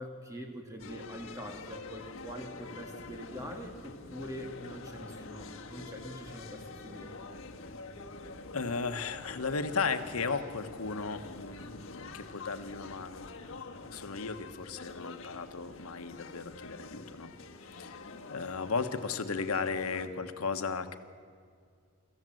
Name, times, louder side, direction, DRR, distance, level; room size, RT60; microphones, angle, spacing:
voice 1, 0.0-7.2, equal, 15° right, 2 dB, 2.4 m, -44 dB
sound 1, 0.8-20.1, left 3 dB, 60° left, 1.7 m, -46 dB
voice 2, 8.5-17.3 17.6-21.0, left 4 dB, 85° left, 8 dB, 1.2 m, -35 dB
25.0 x 15.0 x 7.7 m, 2.2 s
head